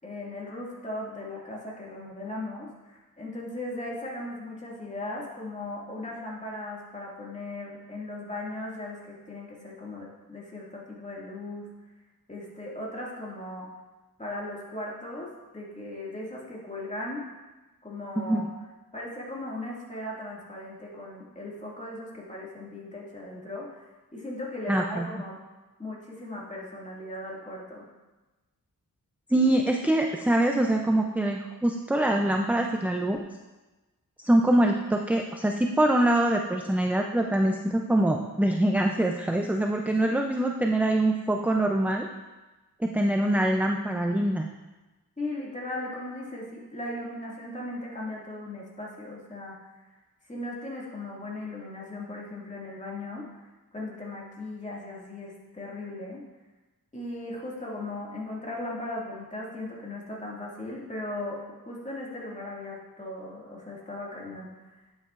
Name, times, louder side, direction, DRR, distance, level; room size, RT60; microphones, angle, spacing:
voice 1, 0.0-11.7 12.3-13.7 14.2-17.2 17.8-18.5 18.9-23.8 24.1-25.4 25.8-27.9 45.2-49.6 50.3-53.3 53.7-56.2 56.9-64.5, left 1 dB, 20° left, -4 dB, 2.0 m, -37 dB
voice 2, 18.2-18.5 24.7-25.1 29.3-33.2 34.2-42.1 42.8-44.5, right 1 dB, 5° right, 2 dB, 0.4 m, -24 dB
9.4 x 8.6 x 2.4 m, 1.2 s
wide cardioid pair, 95°, 38 cm